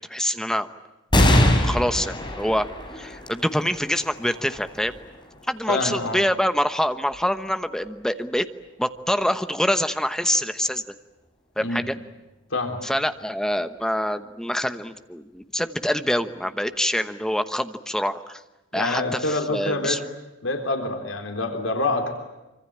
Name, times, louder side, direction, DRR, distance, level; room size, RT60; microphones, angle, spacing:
voice 1, 0.1-0.7 1.6-2.7 3.0-4.9 5.5-8.5 8.8-10.8 11.6-12.0 12.8-18.4 18.7-20.0, equal, 5° left, 9 dB, 1.1 m, -25 dB
sound 1, 1.1-8.0 8.6-8.7 9.8-10.4, left 1 dB, 25° left, 4.7 m, -25 dB
voice 2, 5.7-6.2 11.6-11.8 12.5-12.8 18.7-20.0 20.4-22.1, left 2 dB, 75° left, 4 dB, 3.6 m, -26 dB
25.5 x 25.5 x 8.8 m, 1.0 s
head